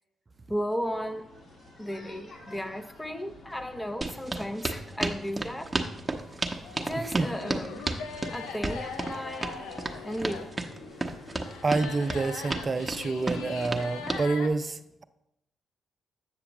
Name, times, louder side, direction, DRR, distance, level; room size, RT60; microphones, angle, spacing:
voice 1, 0.5-1.3 1.8-5.7 6.8-7.9 8.3-9.6 10.0-10.5, equal, 10° left, 9 dB, 0.7 m, -34 dB
sound 1, 0.8-14.1, left 2 dB, 60° left, 1.9 m, -50 dB
sound 2, 4.0-14.2, right 2 dB, 15° right, 0.9 m, -32 dB
voice 2, 7.0-7.3 9.8-10.0 11.6-15.0, right 3 dB, 35° right, 12 dB, 0.4 m, -28 dB
sound 3, 7.3-14.5, left 6 dB, 80° left, 0.5 m, -41 dB
8.0 x 6.9 x 3.0 m, 0.85 s
hypercardioid pair, 45°, 0 cm